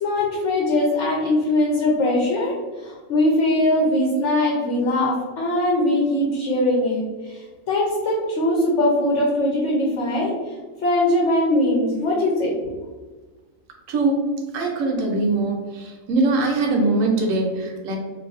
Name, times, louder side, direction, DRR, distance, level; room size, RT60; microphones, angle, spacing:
voice 1, 0.0-10.3 10.8-12.7, left 1 dB, 65° left, -2 dB, 1.0 m, -21 dB
voice 2, 13.9-14.3 14.5-18.0, right 2 dB, 75° right, 1 dB, 1.0 m, -22 dB
2.6 x 2.5 x 4.0 m, 1.3 s
omnidirectional pair, 1.4 m